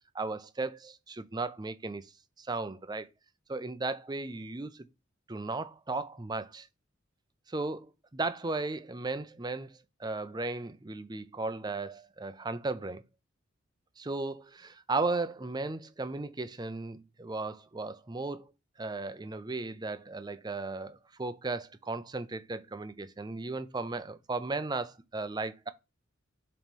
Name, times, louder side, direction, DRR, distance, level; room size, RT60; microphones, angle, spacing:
voice 1, 0.1-2.1 2.4-3.1 3.5-4.9 5.3-6.7 7.5-13.0 14.0-18.4 18.8-25.7, right 3 dB, 20° right, 0.6 m, -36 dB
7.3 x 3.1 x 5.3 m
head